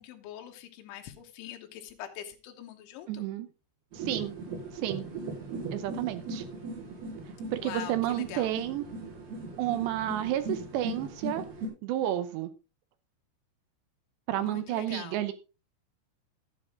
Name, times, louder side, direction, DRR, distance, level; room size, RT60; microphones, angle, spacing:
voice 1, 0.0-3.2 7.6-8.5 14.4-15.2, left 11 dB, 85° left, 4 dB, 3.6 m, -43 dB
voice 2, 3.1-3.5 3.9-4.4 4.7-5.1 5.7-6.4 7.5-8.8 9.6-11.4 11.8-12.5 14.3-15.3, right 13 dB, 75° right, 12 dB, 2.8 m, -31 dB
sound 1, 3.9-11.7, right 2 dB, 55° right, 5.5 m, -39 dB
11.0 x 9.3 x 3.7 m, 0.30 s
omnidirectional pair, 5.4 m